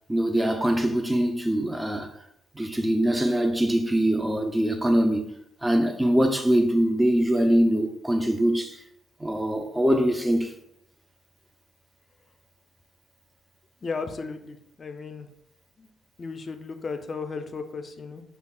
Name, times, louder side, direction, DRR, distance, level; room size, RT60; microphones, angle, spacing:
voice 1, 0.1-2.1 2.6-5.3 5.6-8.8 9.2-10.5, right 1 dB, 10° right, 0.5 m, -23 dB
voice 2, 13.8-15.3 15.8-15.9 16.2-18.2, left 4 dB, 40° left, 0.4 m, -35 dB
5.1 x 2.3 x 2.2 m
supercardioid pair, 70°, 0 cm